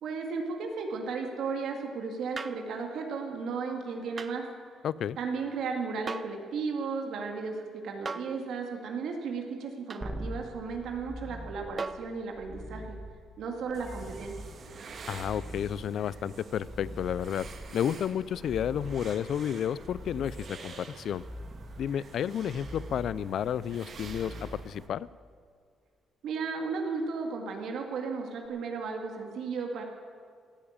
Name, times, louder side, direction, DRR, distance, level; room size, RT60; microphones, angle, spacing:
voice 1, 0.0-4.5 5.2-7.5 7.8-13.0 13.4-14.3 26.2-29.8, right 4 dB, 75° right, 2 dB, 2.2 m, -34 dB
sound 1, 2.4-2.7 4.2-4.4 6.1-6.4 8.0-8.4 9.9-10.1 11.8-12.1 13.7-13.8, right 4 dB, 35° right, 0.6 m, -38 dB
voice 2, 4.8-5.2 15.1-17.5 17.7-21.2 21.8-25.1, left 9 dB, 65° left, 20 dB, 0.4 m, -31 dB
sound 2, 10.0-25.3 28.4-28.5, equal, 10° right, 1.6 m, -44 dB
sound 3, 13.7-24.9, right 4 dB, 50° right, 1.9 m, -48 dB
16.5 x 8.8 x 8.9 m, 2.1 s
cardioid pair, 90°, 0 cm